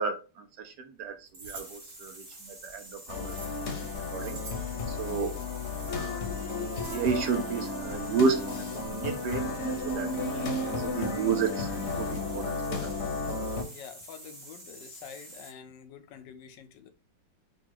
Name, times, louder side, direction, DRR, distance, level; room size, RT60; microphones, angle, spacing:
voice 1, 0.0-3.7 4.1-4.4 4.9-5.4 5.9-6.2 6.9-8.4 8.7-9.4 9.8-11.7 12.0-12.9, right 5 dB, 70° right, 5 dB, 1.2 m, -32 dB
sound 1, 1.3-1.6 2.6-3.5 4.0-4.7 5.4-6.0 6.4-7.0, right 3 dB, 50° right, 1.7 m, -46 dB
sound 2, 1.4-15.6, right 1 dB, 30° right, 0.9 m, -48 dB
sound 3, 3.1-13.6, left 3 dB, 50° left, 1.0 m, -33 dB
voice 2, 13.6-16.9, left 8 dB, 80° left, 8 dB, 1.3 m, -47 dB
3.9 x 2.3 x 4.5 m, 0.32 s
omnidirectional pair, 2.0 m